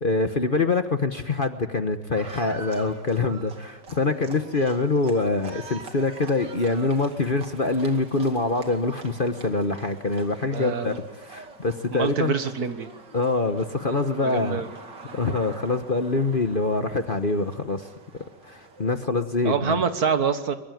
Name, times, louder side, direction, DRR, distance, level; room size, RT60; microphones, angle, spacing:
voice 1, 0.0-12.4 13.1-14.6 15.1-17.9 18.4-19.8, left 3 dB, 35° left, 7 dB, 1.1 m, -25 dB
Livestock farm animals working animals, 2.1-19.0, right 3 dB, 75° right, 3.1 m, -45 dB
voice 2, 10.5-11.0 11.9-12.9 14.2-14.7 19.4-20.5, right 6 dB, 60° right, 9 dB, 1.8 m, -25 dB
23.0 x 22.0 x 9.2 m, 1.1 s
omnidirectional pair, 1.9 m